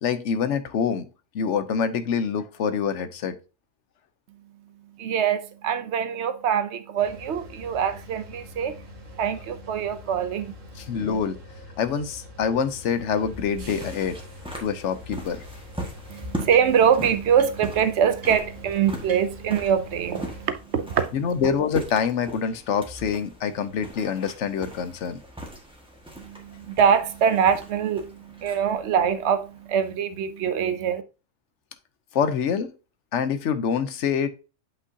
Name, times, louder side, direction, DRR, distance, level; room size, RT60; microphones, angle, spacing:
voice 1, 0.0-1.1 1.3-3.4 10.8-11.4 11.8-14.2 14.6-15.4 21.1-25.2 32.1-32.7 33.1-34.3, left 7 dB, 75° left, 1.0 m, -26 dB
voice 2, 5.0-8.8 9.2-10.6 16.1-21.0 26.2-31.0, right 8 dB, 70° right, 0.9 m, -24 dB
sound 1, 7.0-20.5, left 1 dB, 90° right, 1.7 m, -44 dB
sound 2, 12.5-30.1, equal, 5° right, 1.5 m, -40 dB
sound 3, 13.0-13.1 13.7-13.8 15.1-15.2 15.4-17.0 17.3-17.8 18.2-18.3 18.6-18.7 19.0-20.1, right 2 dB, 35° right, 2.4 m, -49 dB
8.3 x 5.4 x 2.7 m
omnidirectional pair, 1.3 m